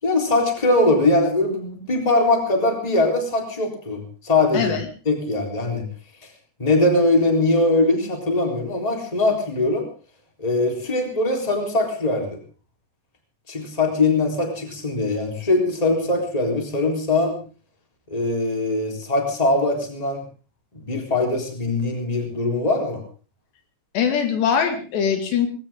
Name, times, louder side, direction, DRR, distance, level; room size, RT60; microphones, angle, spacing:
voice 1, 0.0-4.7 5.0-5.8 6.6-9.8 10.4-12.4 13.5-17.4 18.1-20.2 20.7-23.0, left 2 dB, 10° left, 2 dB, 3.4 m, -21 dB
voice 2, 23.9-25.5, left 7 dB, 75° left, 5 dB, 4.4 m, -21 dB
19.5 x 18.0 x 3.8 m, 0.37 s
omnidirectional pair, 5.0 m